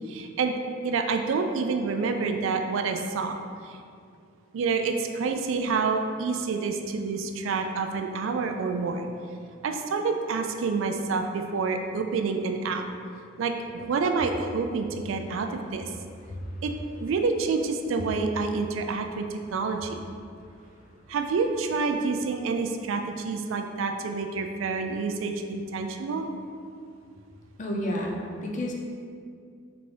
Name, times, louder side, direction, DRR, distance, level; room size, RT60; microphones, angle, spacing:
voice 1, 0.1-0.5 0.8-3.4 4.5-9.1 9.6-12.8 13.4-15.9 16.6-16.7 17.0-19.3 19.5-20.0 21.1-26.3, right 4 dB, 75° right, 5 dB, 0.3 m, -28 dB
voice 2, 27.6-28.7, equal, 40° left, -1 dB, 0.5 m, -30 dB
3.9 x 3.4 x 3.3 m, 2.3 s
head